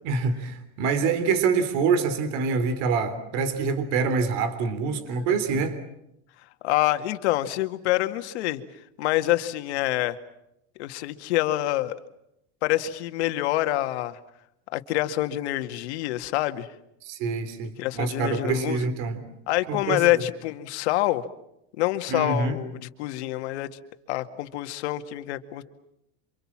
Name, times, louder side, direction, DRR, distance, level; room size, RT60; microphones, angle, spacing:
voice 1, 0.0-5.8 17.0-19.2 19.7-20.3 22.1-22.6, right 5 dB, 50° right, 3.6 m, -26 dB
voice 2, 6.6-8.6 9.0-10.2 10.8-11.9 12.6-14.2 14.7-16.7 17.8-18.8 19.5-21.2 21.8-23.7 24.1-25.6, left 16 dB, 75° left, 2.1 m, -26 dB
28.5 x 26.0 x 7.5 m
supercardioid pair, 155°, 33 cm